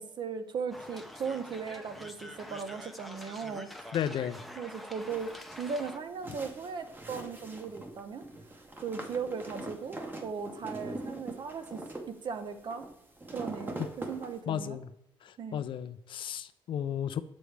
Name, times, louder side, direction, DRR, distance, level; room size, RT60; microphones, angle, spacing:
voice 1, 0.0-3.7 4.6-5.3 5.6-8.2 8.8-11.8 12.2-12.9 13.3-14.8 15.4-15.6, right 5 dB, 50° right, 9 dB, 0.7 m, -37 dB
sound 1, 0.7-6.0, left 1 dB, ahead, 0.6 m, -46 dB
voice 2, 3.9-4.4 14.5-14.9 15.5-17.2, left 9 dB, 60° left, 12 dB, 0.5 m, -33 dB
sound 2, 5.1-14.4, right 2 dB, 20° right, 0.9 m, -43 dB
6.8 x 6.2 x 3.3 m, 0.87 s
cardioid pair, 110°, 10 cm